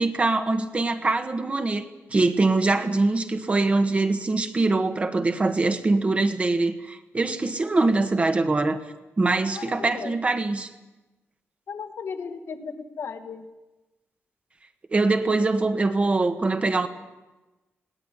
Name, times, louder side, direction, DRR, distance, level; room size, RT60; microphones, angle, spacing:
voice 1, 0.0-8.8 9.2-10.7 14.9-16.9, right 3 dB, 30° right, 8 dB, 1.6 m, -23 dB
voice 2, 9.5-10.1 11.7-13.4, left 5 dB, 65° left, 6 dB, 2.0 m, -35 dB
20.5 x 17.5 x 9.6 m, 1.1 s
wide cardioid pair, 140°, 5 cm